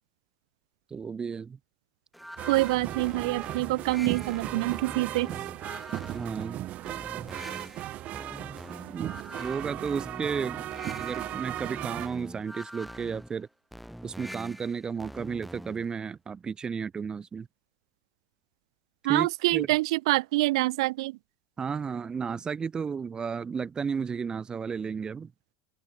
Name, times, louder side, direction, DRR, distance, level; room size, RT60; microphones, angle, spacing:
voice 1, 0.9-1.6 6.1-6.7 8.9-9.1 9.4-10.7 11.0-13.5 14.0-17.5 19.1-19.7 21.6-25.3, right 6 dB, 25° right, 1.4 m, -33 dB
sound 1, 2.1-15.9, equal, ahead, 5.1 m, -44 dB
sound 2, 2.4-12.1, right 14 dB, 45° right, 3.2 m, -37 dB
voice 2, 2.5-5.3 19.0-21.2, right 20 dB, 60° right, 0.8 m, -26 dB
open air
figure-of-eight pair, 70°, 3 cm